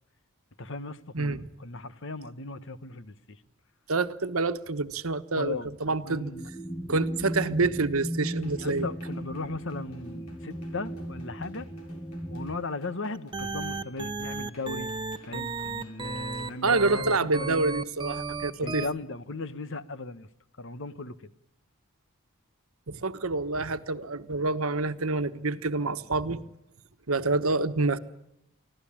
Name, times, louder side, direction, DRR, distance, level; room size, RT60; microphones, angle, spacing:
voice 1, 0.6-3.4 5.4-6.5 8.6-11.7 12.3-14.9 15.2-17.6 18.6-20.3 20.6-21.3, left 3 dB, 60° left, 14 dB, 1.2 m, -37 dB
voice 2, 1.1-1.5 3.9-6.3 6.9-8.9 16.6-18.8 22.9-26.4 27.1-28.0, right 3 dB, 75° right, 11 dB, 1.3 m, -27 dB
sound 1, 6.3-12.6, equal, 10° left, 0.9 m, -37 dB
sound 2, 8.2-17.4, left 2 dB, 90° left, 5.8 m, -55 dB
sound 3, 13.1-18.9, right 3 dB, 20° right, 1.0 m, -34 dB
24.5 x 16.0 x 8.7 m, 0.82 s
head